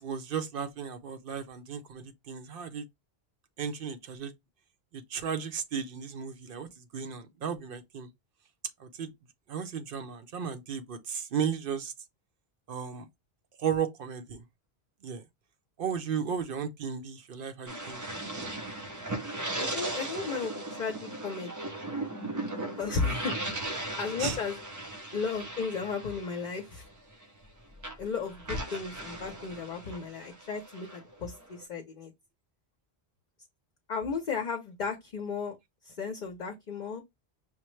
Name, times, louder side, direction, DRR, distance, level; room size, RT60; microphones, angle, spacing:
voice 1, 0.0-2.9 3.6-4.3 4.9-8.1 8.8-9.1 9.5-11.9 12.7-13.0 13.6-14.4 15.0-15.2 15.8-18.0 23.0-23.2 24.2-24.4, right 7 dB, 65° right, 0.8 m, -35 dB
sound 1, 17.7-27.5 27.8-31.6, right 2 dB, 25° right, 0.4 m, -38 dB
voice 2, 19.6-21.7 22.8-24.6 25.1-26.9 28.0-32.1 33.9-35.6 35.8-37.0, left 5 dB, 50° left, 0.7 m, -35 dB
5.7 x 2.0 x 3.1 m
omnidirectional pair, 1.0 m